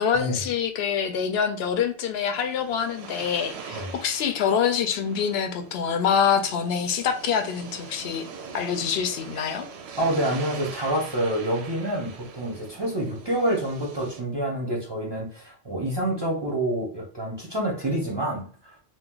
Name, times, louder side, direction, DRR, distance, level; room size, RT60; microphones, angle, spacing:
voice 1, 0.0-8.2 8.5-9.7, left 7 dB, 65° left, 6 dB, 0.7 m, -25 dB
sound 1, 1.9-14.2, right 5 dB, 65° right, 0.8 m, -42 dB
voice 2, 10.0-18.7, right 1 dB, 25° right, -2 dB, 0.7 m, -27 dB
2.5 x 2.4 x 3.8 m, 0.43 s
omnidirectional pair, 1.3 m